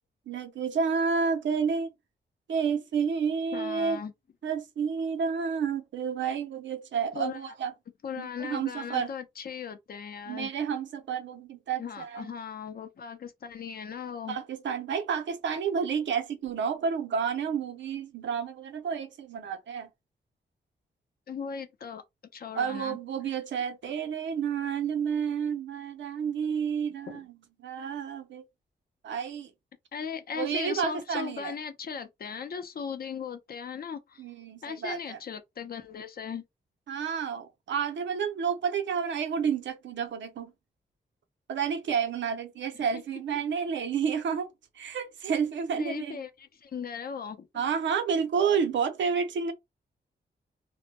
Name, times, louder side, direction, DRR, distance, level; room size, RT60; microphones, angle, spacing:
voice 1, 0.3-1.9 2.5-4.0 4.4-7.7 8.2-9.1 10.3-12.3 14.3-19.9 22.5-27.3 27.6-28.4 29.0-29.5 30.3-31.5 34.2-35.2 36.9-40.5 41.5-44.5 44.7-46.2 47.5-49.5, right 6 dB, 90° right, 0.6 m, -30 dB
voice 2, 3.5-4.1 7.1-7.4 8.0-10.5 11.8-14.4 21.3-22.0 22.3-23.0 27.1-27.2 29.9-34.2 34.6-36.4 42.7-43.0 45.8-47.5, left 6 dB, 55° left, 0.5 m, -38 dB
2.1 x 2.1 x 2.8 m
wide cardioid pair, 95°, 18 cm